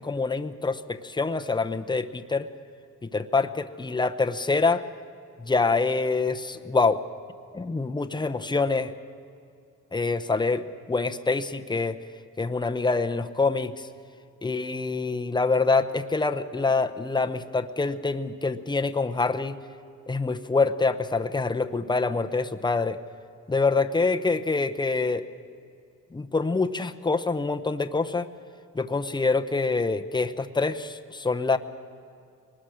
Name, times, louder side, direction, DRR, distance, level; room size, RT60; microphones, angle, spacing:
voice 1, 0.0-2.5 3.1-4.8 5.4-7.0 7.5-8.9 9.9-12.0 12.4-13.9 14.4-19.6 20.1-23.0 23.5-25.3 26.1-28.3 28.7-31.6, left 3 dB, 15° left, 8 dB, 0.8 m, -25 dB
23.5 x 20.0 x 6.4 m, 2.4 s
cardioid pair, 110°, 33 cm